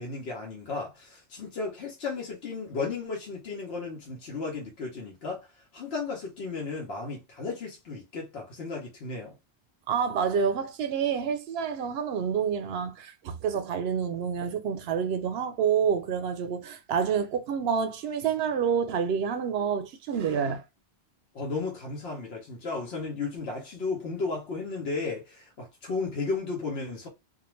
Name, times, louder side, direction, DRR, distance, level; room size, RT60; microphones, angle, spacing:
voice 1, 0.0-5.5 5.7-9.4 21.3-27.1, left 4 dB, 75° left, 1.0 m, -34 dB
voice 2, 9.9-20.6, right 7 dB, 75° right, 0.8 m, -28 dB
2.4 x 2.3 x 3.0 m
omnidirectional pair, 1.1 m